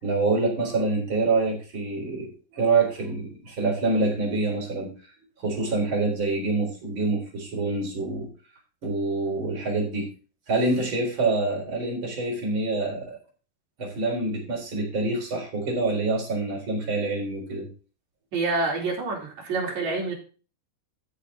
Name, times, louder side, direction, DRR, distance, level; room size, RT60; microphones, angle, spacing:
voice 1, 0.0-4.9 5.4-8.3 8.8-10.1 10.5-13.2 13.8-17.7, right 3 dB, 30° right, -1 dB, 4.3 m, -26 dB
voice 2, 18.3-20.1, right 3 dB, 45° right, -1 dB, 4.2 m, -27 dB
13.5 x 6.5 x 3.7 m, 0.36 s
omnidirectional pair, 4.8 m